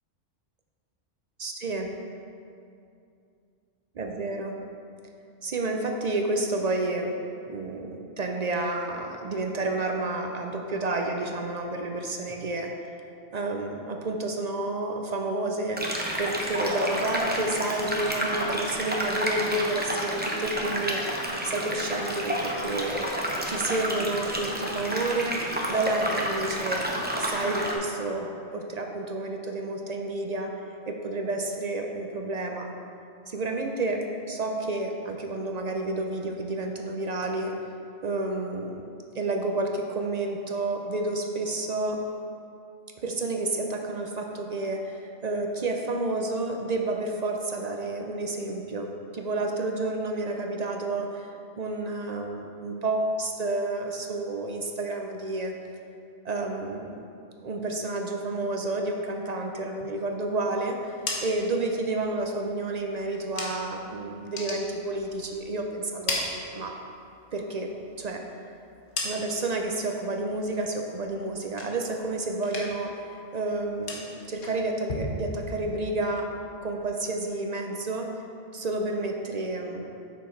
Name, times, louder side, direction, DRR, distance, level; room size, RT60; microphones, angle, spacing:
voice 1, 1.4-1.9 3.9-4.6 5.4-7.2 7.5-12.7 13.3-21.0 21.4-26.9 27.2-30.5 30.9-32.7 33.3-37.6 38.0-38.9 39.1-42.0 43.0-51.3 51.6-55.5 56.2-57.0 57.4-66.2 66.5-66.8 67.3-67.7 68.0-68.2 69.0-76.4 76.6-78.1 78.5-80.0, right 2 dB, 55° right, 3 dB, 0.5 m, -30 dB
sound 1, 15.8-27.7, right 1 dB, 10° right, 0.6 m, -30 dB
sound 2, 60.7-63.8 64.2-65.5 65.8-67.1 67.5-69.6 70.0-70.4 70.8-72.1 72.4-73.0 73.2-76.1, left 3 dB, 85° left, 1.4 m, -37 dB
7.4 x 6.2 x 4.4 m, 2.6 s
omnidirectional pair, 1.3 m